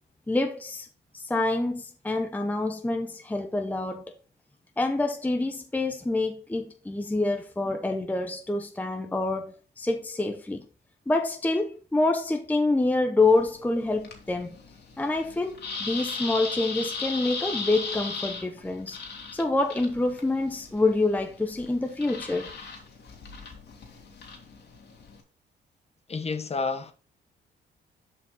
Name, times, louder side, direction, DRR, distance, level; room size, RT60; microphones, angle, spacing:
voice 1, 0.3-0.9 1.1-4.1 4.8-10.6 11.1-14.6 15.0-19.0 19.3-22.5, left 2 dB, 10° left, 0.7 m, -27 dB
sound 1, 13.2-25.2, left 4 dB, 60° left, 2.1 m, -38 dB
voice 2, 26.1-26.9, left 4 dB, 30° left, 1.0 m, -30 dB
7.0 x 5.2 x 3.7 m
cardioid pair, 90°, 20 cm